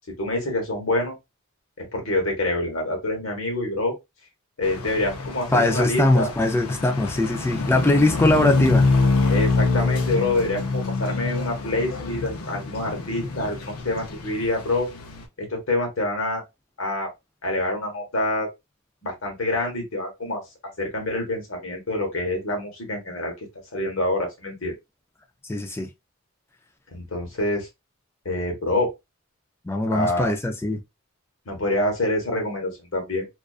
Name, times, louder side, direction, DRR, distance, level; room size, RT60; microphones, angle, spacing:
voice 1, 0.2-1.2 1.8-3.9 4.6-6.3 9.3-14.9 15.4-16.4 16.8-17.1 17.4-18.5 19.0-20.4 20.8-23.3 23.7-24.7 26.9-27.7 28.2-28.9 29.9-30.3 31.5-33.3, left 1 dB, 65° left, 1.1 m, -26 dB
sound 1, 4.6-15.3, left 3 dB, 85° left, 0.6 m, -26 dB
voice 2, 5.5-8.9 25.5-25.9 29.7-30.8, left 2 dB, 10° left, 0.3 m, -21 dB
2.4 x 2.3 x 2.3 m
head